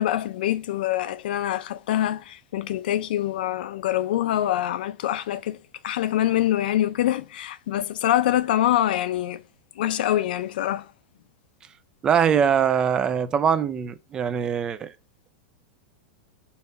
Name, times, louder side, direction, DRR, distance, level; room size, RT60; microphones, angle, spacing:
voice 1, 0.0-5.6 5.8-9.4 9.8-10.9, left 12 dB, 65° left, 0.6 m, -25 dB
voice 2, 12.0-14.9, right 7 dB, 15° right, 0.4 m, -22 dB
5.7 x 5.6 x 5.2 m
supercardioid pair, 170°, 5 cm